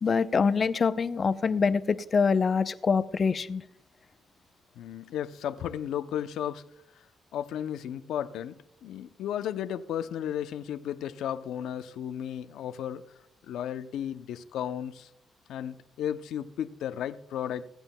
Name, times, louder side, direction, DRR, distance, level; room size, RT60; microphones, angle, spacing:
voice 1, 0.0-3.6, left 5 dB, 45° left, 0.6 m, -25 dB
voice 2, 4.8-6.6 7.3-13.0 13.4-15.1 15.5-17.7, left 10 dB, 85° left, 0.6 m, -34 dB
22.5 x 8.9 x 2.2 m
cardioid pair, 90°, 0 cm